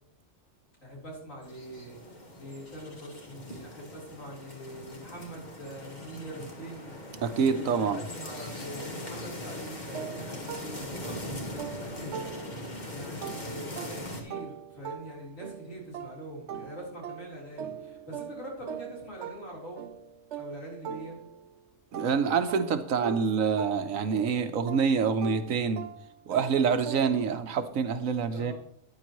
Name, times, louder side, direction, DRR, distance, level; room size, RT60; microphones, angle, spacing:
voice 1, 0.8-7.0 7.5-19.9 20.3-21.2 28.3-28.5, equal, 80° left, -3 dB, 4.4 m, -44 dB
sound 1, 1.4-14.2, left 1 dB, 35° left, 1.8 m, -41 dB
voice 2, 7.2-8.0 21.9-25.9 26.3-28.5, right 6 dB, 80° right, 9 dB, 1.3 m, -26 dB
sound 2, 9.9-12.8 13.2-21.6 21.9-27.4, right 8 dB, 65° right, 0.9 m, -42 dB
13.5 x 9.5 x 3.1 m, 0.70 s
omnidirectional pair, 1.4 m